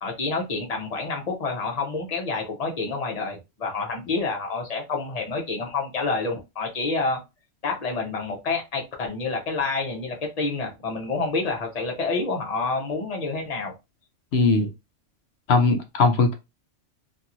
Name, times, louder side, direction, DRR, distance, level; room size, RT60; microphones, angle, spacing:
voice 1, 0.0-7.2 7.6-13.7, left 3 dB, 35° left, 0.8 m, -28 dB
voice 2, 14.3-14.7 15.5-16.3, left 3 dB, 65° left, 0.8 m, -19 dB
2.8 x 2.6 x 2.5 m
omnidirectional pair, 1.3 m